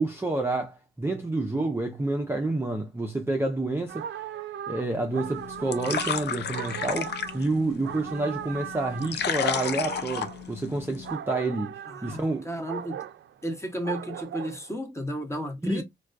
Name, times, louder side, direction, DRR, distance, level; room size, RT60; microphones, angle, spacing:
voice 1, 0.0-4.1 4.7-12.5 15.6-15.8, right 2 dB, 10° right, 0.5 m, -29 dB
sound 1, 3.9-14.8, right 10 dB, 65° right, 0.4 m, -38 dB
sound 2, 5.2-11.1, left 8 dB, 55° left, 0.4 m, -33 dB
voice 2, 11.9-13.0 13.4-15.8, equal, 15° left, 0.9 m, -33 dB
2.3 x 2.2 x 2.5 m
cardioid pair, 55°, 20 cm